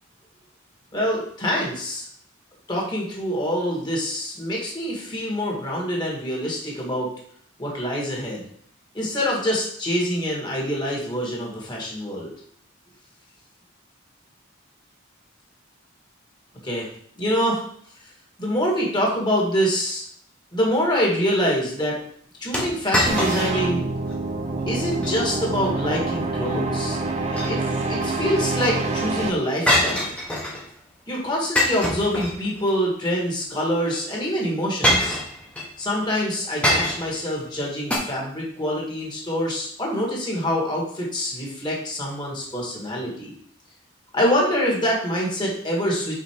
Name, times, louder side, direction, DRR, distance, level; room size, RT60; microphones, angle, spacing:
voice 1, 0.9-2.0 2.7-7.1 7.6-8.4 8.9-12.3 16.6-16.9 17.2-17.6 18.4-20.0 20.5-22.0 22.4-23.9 24.7-27.0 27.3-30.1 31.1-35.2 35.8-43.3 44.1-46.2, equal, 20° left, -3 dB, 1.6 m, -25 dB
sound 1, 22.5-23.7 24.1-24.2 24.8-25.2 27.1-27.9 29.7-30.7 31.6-32.7 33.9-34.0 34.8-35.7 36.6-37.2 37.9-38.0, equal, 5° left, 1.1 m, -24 dB
sound 2, 23.0-29.3, right 3 dB, 35° right, 0.6 m, -26 dB
5.2 x 4.2 x 4.5 m, 0.62 s
head